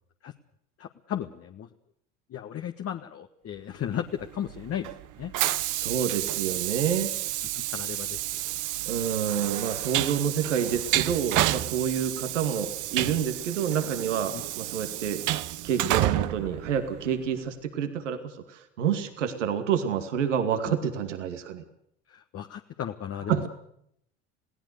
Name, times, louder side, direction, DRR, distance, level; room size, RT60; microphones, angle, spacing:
voice 1, 0.8-1.7 2.3-4.9 5.2-5.3 7.5-8.2 14.3-14.4 20.6-20.7 22.1-23.4, left 10 dB, 40° left, 5 dB, 1.5 m, -35 dB
Train, 4.2-17.4, right 15 dB, 55° right, 1.1 m, -30 dB
voice 2, 5.6-7.1 8.9-15.2 15.6-21.6 23.3-23.5, right 8 dB, 85° right, 8 dB, 2.4 m, -28 dB
28.5 x 17.5 x 6.8 m, 0.72 s
hypercardioid pair, 70°, 35 cm